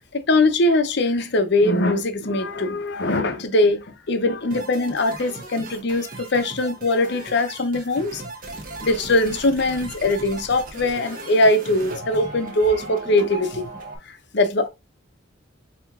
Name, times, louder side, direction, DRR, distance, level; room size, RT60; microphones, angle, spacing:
voice 1, 0.1-8.2 8.8-13.7 14.3-14.7, left 2 dB, 55° left, 0.7 m, -21 dB
sound 1, 4.5-14.0, right 2 dB, 40° right, 1.0 m, -37 dB
5.3 x 2.9 x 2.3 m
head